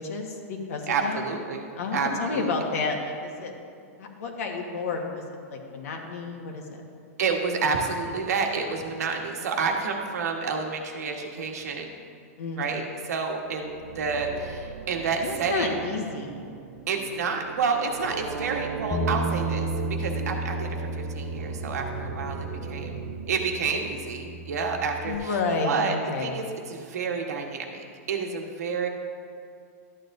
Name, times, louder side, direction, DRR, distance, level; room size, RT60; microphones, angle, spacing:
voice 1, 0.0-1.2 1.8-3.5 4.0-5.2 5.5-6.8 12.4-12.7 15.2-16.5 25.0-26.4, left 4 dB, 65° left, 2 dB, 1.4 m, -30 dB
voice 2, 0.9-2.5 7.2-11.9 12.6-15.7 16.9-23.0 23.3-25.4 25.6-25.9 26.2-28.9, right 5 dB, 85° right, 2 dB, 1.3 m, -29 dB
sound 1, 13.3-24.5, right 8 dB, 55° right, 0.5 m, -39 dB
Bass guitar, 18.9-25.2, right 1 dB, 5° left, 0.5 m, -33 dB
12.5 x 8.9 x 2.6 m, 2.3 s
supercardioid pair, 165°, 8 cm